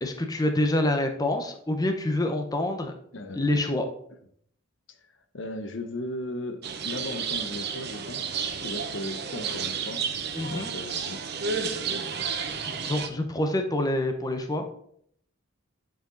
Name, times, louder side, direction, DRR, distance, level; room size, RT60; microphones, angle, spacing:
voice 1, 0.0-2.9 3.3-3.9 10.4-10.7 12.6-14.7, left 1 dB, 20° left, 5 dB, 0.8 m, -26 dB
voice 2, 3.1-3.6 4.9-5.1 5.3-10.0 10.5-11.2, left 1 dB, 65° left, 8 dB, 0.9 m, -37 dB
sound 1, 6.6-13.1, right 6 dB, 55° right, 0.9 m, -31 dB
9.9 x 5.1 x 3.9 m, 0.66 s
head